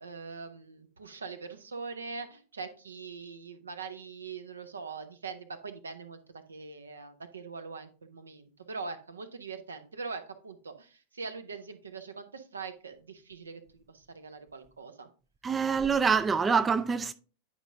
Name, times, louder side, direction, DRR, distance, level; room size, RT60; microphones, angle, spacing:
voice 1, 0.0-15.1, right 4 dB, 75° right, 0.8 m, -42 dB
voice 2, 15.4-17.1, right 5 dB, 15° right, 0.3 m, -25 dB
9.9 x 5.0 x 2.6 m
figure-of-eight pair, 90°, 0 cm